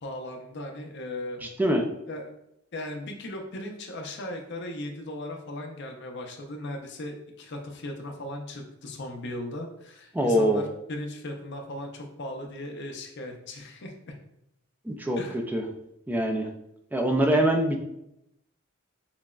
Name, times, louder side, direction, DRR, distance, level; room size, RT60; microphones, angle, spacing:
voice 1, 0.0-1.4 2.1-2.3 2.7-14.1 15.2-15.4, left 1 dB, 55° left, 3 dB, 0.6 m, -37 dB
voice 2, 1.4-1.8 10.1-10.6 14.9-15.2 15.5-15.6 16.1-16.5 16.9-17.8, right 1 dB, 10° right, 3 dB, 0.4 m, -23 dB
5.8 x 2.1 x 2.3 m, 0.80 s
head